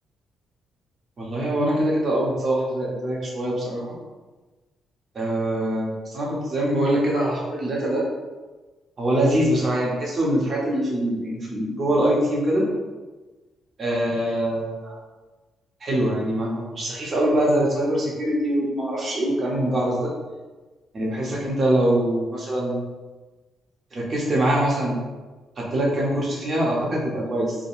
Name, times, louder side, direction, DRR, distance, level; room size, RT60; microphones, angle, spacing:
voice 1, 1.2-4.0 5.1-8.0 9.0-12.7 13.8-15.0 15.8-20.1 20.9-22.8 23.9-25.0 25.6-27.6, right 1 dB, 45° right, -3 dB, 0.8 m, -23 dB
3.0 x 2.1 x 2.4 m, 1.3 s
cardioid pair, 90°, 0 cm